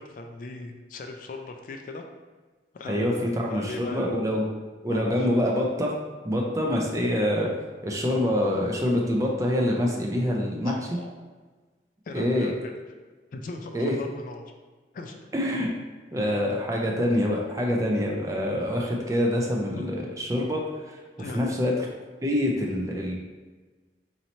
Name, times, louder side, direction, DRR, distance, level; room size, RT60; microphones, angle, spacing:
voice 1, 0.0-2.1 2.7-4.1 4.9-5.4 10.6-11.1 12.1-12.7 13.3-14.4 14.9-15.2 19.8-19.9 21.2-21.6, left 2 dB, 50° left, 4 dB, 0.3 m, -39 dB
voice 2, 2.9-4.5 4.8-5.9 6.2-7.5 7.8-10.8 12.1-12.5 13.7-14.0 15.3-15.7 16.1-21.0 21.3-21.7 22.2-23.1, left 1 dB, 20° right, -1 dB, 0.4 m, -25 dB
2.9 x 2.7 x 4.2 m, 1.3 s
head